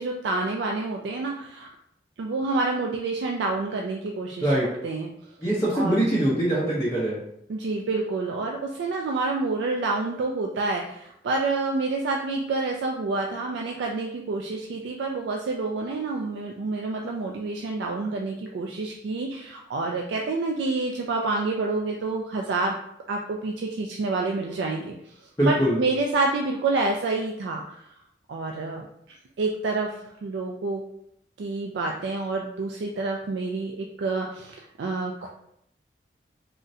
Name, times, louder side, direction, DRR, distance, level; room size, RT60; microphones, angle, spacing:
voice 1, 0.0-1.7 2.2-5.1 5.7-6.0 7.5-22.7 23.1-24.9 25.2-27.8 28.3-28.9 29.4-29.9 30.2-30.8 31.4-35.3, right 3 dB, 85° right, 0 dB, 0.3 m, -28 dB
voice 2, 5.4-7.2 25.4-25.8, right 1 dB, 15° left, -9 dB, 0.6 m, -23 dB
3.7 x 2.1 x 2.6 m, 0.73 s
head